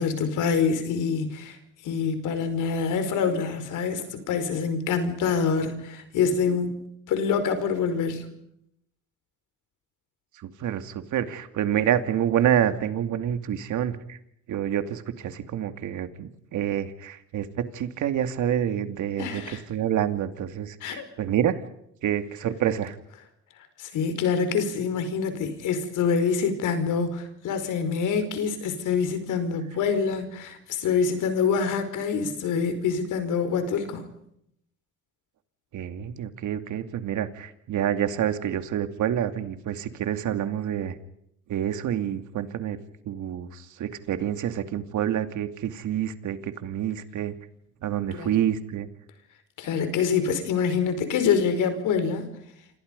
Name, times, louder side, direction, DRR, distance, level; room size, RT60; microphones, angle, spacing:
voice 1, 0.0-1.6 1.8-6.8 7.1-8.2 19.2-19.6 20.8-21.0 23.8-34.0 48.1-48.3 49.6-52.3, left 6 dB, 85° left, 9 dB, 5.0 m, -26 dB
voice 2, 10.6-14.2 14.5-21.6 22.0-23.0 35.7-40.9 41.5-42.8 43.0-47.3 47.8-48.9, right 10 dB, 80° right, 9 dB, 2.6 m, -27 dB
28.0 x 27.0 x 5.4 m, 0.74 s
cardioid pair, 90°, 30 cm